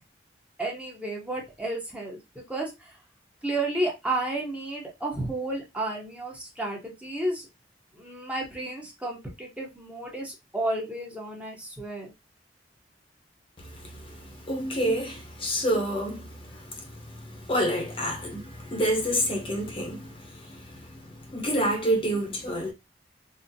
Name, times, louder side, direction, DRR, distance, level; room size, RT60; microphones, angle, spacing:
voice 1, 0.6-2.9 3.4-7.5 8.0-12.1, right 2 dB, 5° right, 0.8 m, -32 dB
voice 2, 13.6-22.7, equal, 30° left, 0.7 m, -29 dB
3.8 x 2.0 x 2.6 m
head